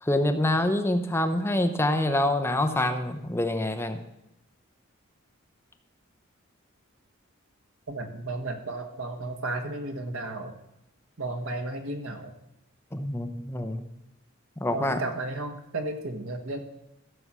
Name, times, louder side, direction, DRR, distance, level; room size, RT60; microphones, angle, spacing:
voice 1, 0.0-4.0 12.9-13.8 14.6-15.0, left 1 dB, 10° left, 7 dB, 0.8 m, -26 dB
voice 2, 7.9-10.5 11.2-12.3 14.7-16.6, right 2 dB, 80° right, 5 dB, 1.6 m, -33 dB
14.5 x 7.0 x 6.2 m, 0.89 s
head